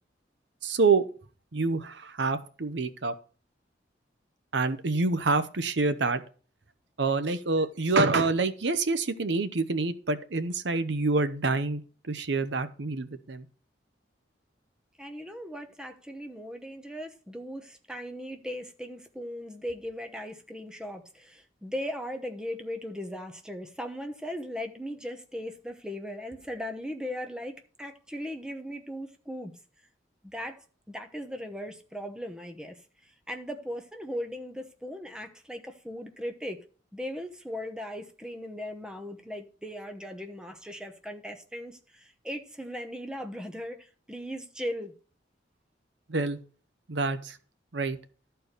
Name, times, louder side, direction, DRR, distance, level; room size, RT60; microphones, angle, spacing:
voice 1, 0.6-1.0 1.5-3.1 4.5-6.2 7.0-11.8 12.1-13.5 46.1-46.4 46.9-47.4 47.7-48.0, right 3 dB, 70° right, 0.8 m, -27 dB
voice 2, 15.0-29.5 30.2-36.6 36.9-44.9, equal, 5° right, 0.9 m, -38 dB
12.5 x 4.5 x 6.6 m
head